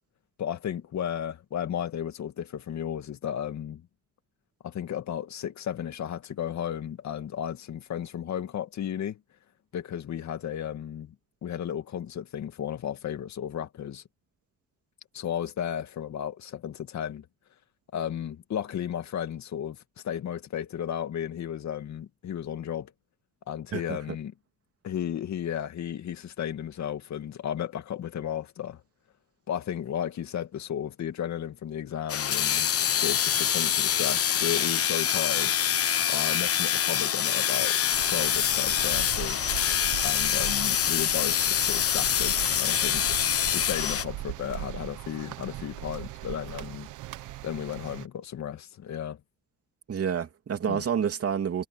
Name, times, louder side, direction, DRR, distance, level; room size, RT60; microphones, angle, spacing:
voice 1, 0.4-3.9 4.6-9.2 9.7-11.1 11.4-14.0 15.1-17.3 17.9-22.9 23.5-24.3 24.8-28.8 29.5-35.5 36.1-37.8 38.0-39.4 40.0-43.2 43.5-46.9 47.4-49.2 50.7-50.8, left 9 dB, 65° left, 2.4 m, -34 dB
sound 1, 32.1-44.1, left 9 dB, 50° left, 1.1 m, -25 dB
sound 2, 37.9-48.1, right 16 dB, 90° right, 1.0 m, -39 dB
voice 2, 49.9-51.7, right 7 dB, 50° right, 3.0 m, -28 dB
cardioid pair, 90°, 30 cm